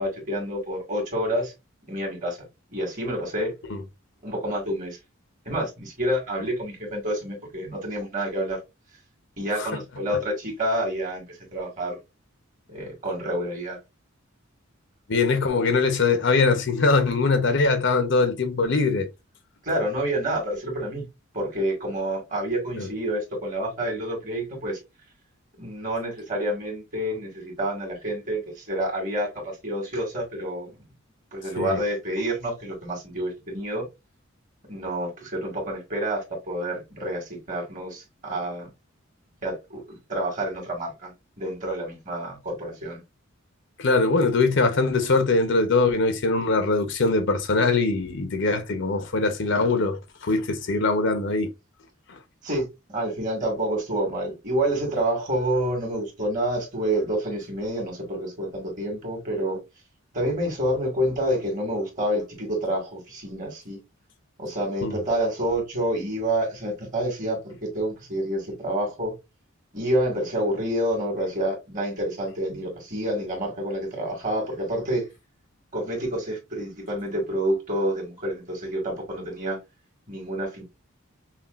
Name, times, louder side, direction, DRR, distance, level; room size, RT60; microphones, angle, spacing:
voice 1, 0.0-1.5 1.9-2.4 2.7-3.5 4.2-5.0 5.5-8.6 9.4-12.0 12.7-13.8 19.6-21.0 21.3-24.8 25.6-30.7 31.3-33.9 34.7-38.7 39.4-41.1 41.4-43.0 52.4-59.6 60.1-63.8 64.4-69.1 69.7-75.1 75.7-79.6 80.1-80.6, right 1 dB, 40° right, 1.9 m, -28 dB
voice 2, 15.1-19.1 22.8-22.9 31.6-31.8 43.8-51.5 52.1-52.2 64.8-65.0, left 3 dB, 60° left, 0.7 m, -22 dB
5.8 x 2.4 x 2.4 m
head